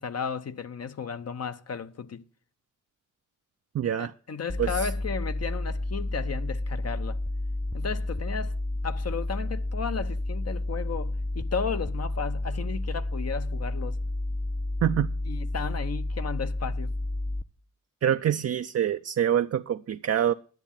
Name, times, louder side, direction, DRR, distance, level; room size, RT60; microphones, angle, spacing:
voice 1, 0.0-2.2 4.0-7.2 7.7-8.5 8.8-14.0 15.3-16.9, left 6 dB, 50° left, 0.8 m, -34 dB
voice 2, 3.7-4.1 4.6-4.9 14.8-15.1 18.0-20.3, right 10 dB, 50° right, 0.5 m, -25 dB
sound 1, 4.5-17.4, left 2 dB, ahead, 0.5 m, -31 dB
10.5 x 7.3 x 7.1 m
cardioid pair, 70°, 31 cm